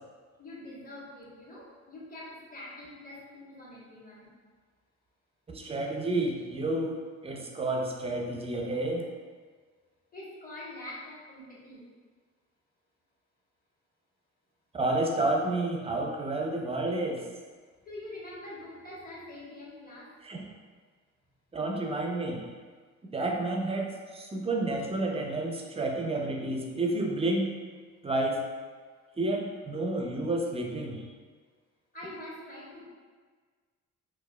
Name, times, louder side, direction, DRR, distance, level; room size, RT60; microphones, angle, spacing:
voice 1, 0.4-4.3 10.1-11.9 17.8-20.1 31.9-32.8, left 1 dB, 30° left, -6 dB, 1.1 m, -44 dB
voice 2, 5.5-7.0 7.2-9.1 14.7-17.2 20.2-20.5 21.5-22.4 23.1-27.5 28.0-28.4 29.2-31.0, right 2 dB, 20° right, 1 dB, 0.4 m, -30 dB
4.3 x 2.3 x 2.2 m, 1.5 s
cardioid pair, 90°, 30 cm